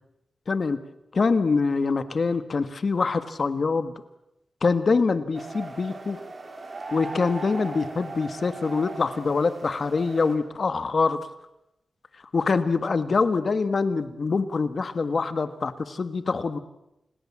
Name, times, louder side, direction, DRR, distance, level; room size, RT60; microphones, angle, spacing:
voice 1, 0.5-0.8 1.1-3.9 4.6-6.2 6.9-11.2 12.3-16.6, left 4 dB, 55° left, 12 dB, 1.6 m, -24 dB
sound 1, 5.3-10.4, right 3 dB, 45° right, 4.0 m, -38 dB
29.0 x 20.0 x 7.4 m, 0.86 s
wide cardioid pair, 110°, 0 cm